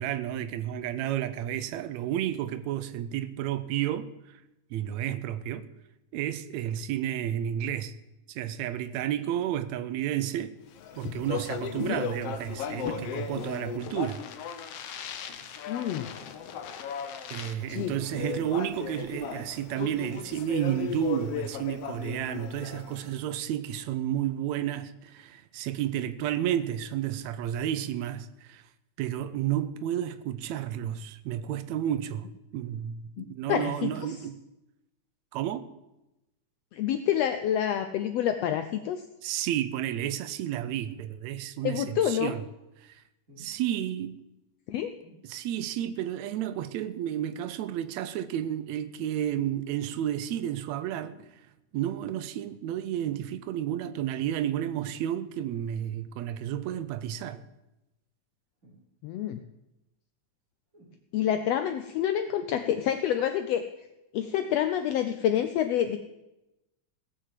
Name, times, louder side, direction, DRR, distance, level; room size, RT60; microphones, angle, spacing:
voice 1, 0.0-4.4 4.7-5.7 6.1-7.9 8.3-10.6 11.0-14.2 17.3-28.6 29.0-32.3 32.5-34.4 35.3-35.6 39.2-42.5 42.8-43.0 43.4-44.2 45.2-51.2 51.7-57.4, right 11 dB, 75° right, 1.7 m, -31 dB
Speech, 10.7-23.1, left 7 dB, 65° left, 1.6 m, -36 dB
voice 2, 15.7-16.1 17.7-17.9 33.2-33.9 36.7-39.0 41.6-42.3 44.7-44.9 59.0-59.4 61.1-63.6 64.1-66.0, left 10 dB, 85° left, 1.4 m, -28 dB
sound 1, 43.3-43.6 45.0-45.3 47.1-47.5 49.0-49.2 51.0-51.3 52.9-53.2 54.7-55.0 56.7-56.9 58.6-59.2 60.7-61.0 61.8-61.9, right 1 dB, 25° right, 3.6 m, -55 dB
16.5 x 6.6 x 7.5 m
omnidirectional pair, 3.6 m